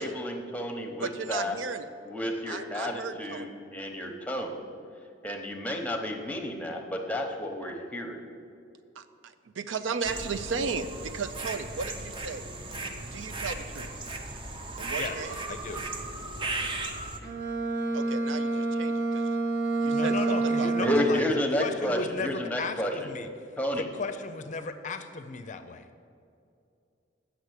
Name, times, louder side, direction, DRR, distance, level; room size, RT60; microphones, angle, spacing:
voice 1, 0.0-1.6 2.1-4.6 5.2-8.2 20.8-22.9 23.6-23.9, left 1 dB, 10° left, 3 dB, 0.9 m, -31 dB
voice 2, 1.0-1.9 2.5-3.5 9.0-12.4 13.0-13.9 14.8-15.6 17.9-19.3 19.8-21.1, right 5 dB, 75° right, 10 dB, 0.5 m, -35 dB
sound 1, 10.0-17.2, right 2 dB, 25° right, 0.7 m, -36 dB
voice 3, 15.5-15.8 19.9-21.3 21.6-23.3 23.7-25.9, left 4 dB, 40° left, 9 dB, 0.5 m, -35 dB
Bowed string instrument, 17.2-21.3, right 2 dB, 55° right, 0.9 m, -28 dB
8.1 x 6.2 x 8.1 m, 2.6 s
head